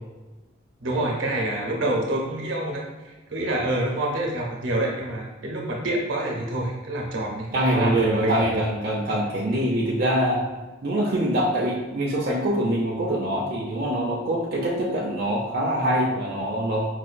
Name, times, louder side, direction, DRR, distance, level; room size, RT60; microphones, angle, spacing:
voice 1, 0.8-8.6, right 1 dB, 80° right, -1 dB, 0.8 m, -27 dB
voice 2, 7.5-10.4 10.8-16.9, right 1 dB, 50° right, -3 dB, 0.4 m, -24 dB
4.7 x 2.2 x 2.4 m, 1.2 s
head